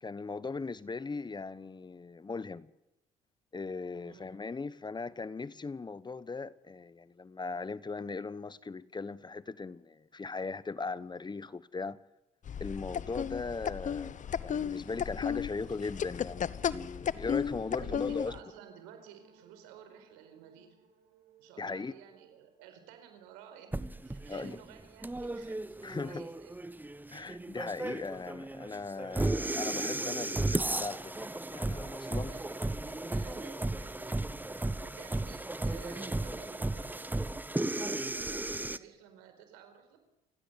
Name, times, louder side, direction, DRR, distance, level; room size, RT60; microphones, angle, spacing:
voice 1, 0.0-2.7 3.5-12.0 12.6-18.3 21.6-21.9 24.3-24.6 25.8-26.2 27.1-32.3, left 4 dB, 25° left, 1.1 m, -39 dB
sound 1, 12.5-18.4, left 8 dB, 45° left, 1.0 m, -35 dB
sound 2, 17.1-24.8, right 8 dB, 65° right, 5.7 m, -61 dB
voice 2, 17.8-20.7 21.4-23.7 24.0-26.6 27.1-27.4 32.3-37.0 37.5-40.0, right 8 dB, 90° right, 4.7 m, -53 dB
sound 3, 23.7-38.8, right 2 dB, 10° right, 1.2 m, -35 dB
28.0 x 17.0 x 8.2 m
supercardioid pair, 65°, 17 cm